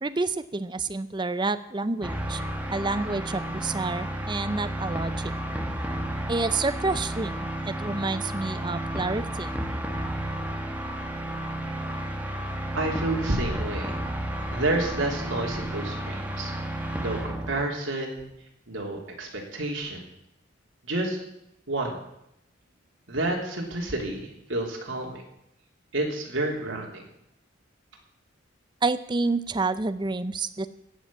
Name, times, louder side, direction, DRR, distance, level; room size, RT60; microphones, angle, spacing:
voice 1, 0.0-2.4 2.7-5.3 6.3-9.5 28.8-30.7, right 3 dB, 25° right, 13 dB, 0.5 m, -29 dB
sound 1, 2.0-17.6, right 1 dB, 5° right, 1.2 m, -32 dB
voice 2, 12.7-13.9 14.5-16.5 17.0-18.3 18.7-20.0 20.8-21.2 21.7-22.0 23.1-25.2 25.9-27.0, right 2 dB, 85° right, 0 dB, 3.1 m, -29 dB
16.0 x 5.8 x 8.5 m, 0.82 s
head